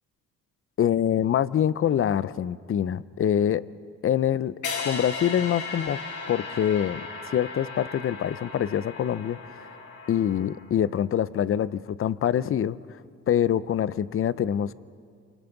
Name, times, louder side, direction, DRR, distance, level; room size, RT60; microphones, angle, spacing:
voice 1, 0.8-3.6 4.0-4.5 4.8-6.0 6.3-7.0 7.3-9.7 10.1-12.8 13.3-14.7, left 10 dB, 45° left, 17 dB, 0.6 m, -25 dB
sound 1, 4.6-10.8, left 4 dB, 80° left, 6.5 m, -36 dB
27.5 x 24.5 x 4.0 m, 2.2 s
cardioid pair, 90°, 30 cm